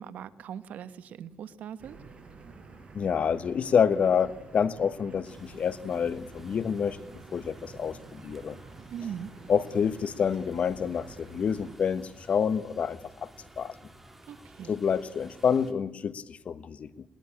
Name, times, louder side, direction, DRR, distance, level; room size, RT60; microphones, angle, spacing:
voice 1, 0.0-2.0 8.9-9.3 14.3-14.7, right 8 dB, 80° right, 13 dB, 1.4 m, -40 dB
sound 1, 1.8-11.8, right 4 dB, 40° right, 7.0 m, -49 dB
voice 2, 2.9-7.0 7.3-8.6 9.5-13.3 13.6-13.7 14.7-17.0, left 7 dB, 55° left, 15 dB, 1.3 m, -28 dB
sound 2, 5.2-15.7, right 1 dB, 10° right, 3.8 m, -53 dB
21.0 x 20.5 x 8.9 m, 0.95 s
cardioid pair, 90°, 3 cm